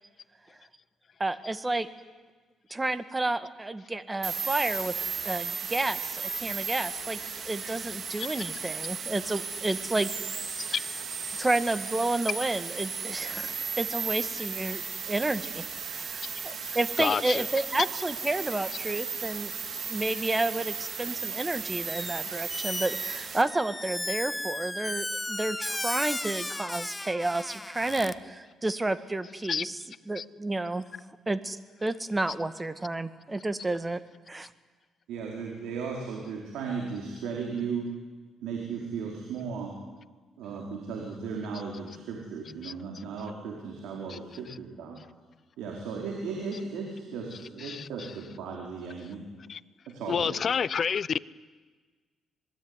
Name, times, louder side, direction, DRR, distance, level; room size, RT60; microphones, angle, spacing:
voice 1, 1.2-1.9 2.7-4.9 5.2-7.2 7.4-10.1 10.6-10.8 11.4-14.8 15.1-19.5 19.9-29.8 30.1-30.8 31.3-34.0 34.3-34.5, right 2 dB, 20° right, 12 dB, 1.7 m, -31 dB
sound 1, 4.2-23.4, right 5 dB, 50° right, 3.8 m, -35 dB
voice 2, 16.7-17.4 29.5-29.6 30.2-30.3 42.6-42.7 44.1-44.2 47.6-48.1 49.5-49.6 50.1-51.2, left 6 dB, 50° left, 20 dB, 0.7 m, -29 dB
Squeak, 21.9-22.2 22.5-28.1, left 2 dB, 10° left, 1.1 m, -35 dB
voice 3, 35.1-37.9 38.4-39.7 40.4-45.0 45.6-49.2 49.9-50.3, right 5 dB, 90° right, 0 dB, 4.6 m, -36 dB
26.5 x 21.0 x 9.8 m, 1.4 s
cardioid pair, 90°, 0 cm